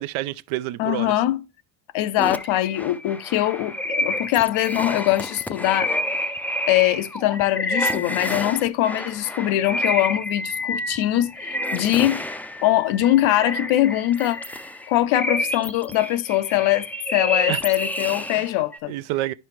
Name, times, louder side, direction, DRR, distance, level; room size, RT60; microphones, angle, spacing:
voice 1, 0.0-1.1 17.5-17.6 18.3-18.4 18.9-19.3, right 16 dB, 80° right, 0.6 m, -28 dB
voice 2, 0.8-1.4 1.9-5.9 6.7-12.3 12.6-14.4 14.9-18.9, left 14 dB, 75° left, 0.8 m, -22 dB
sound 1, 2.2-18.8, left 1 dB, 5° left, 0.4 m, -29 dB
10.5 x 5.5 x 3.1 m
cardioid pair, 105°, 48 cm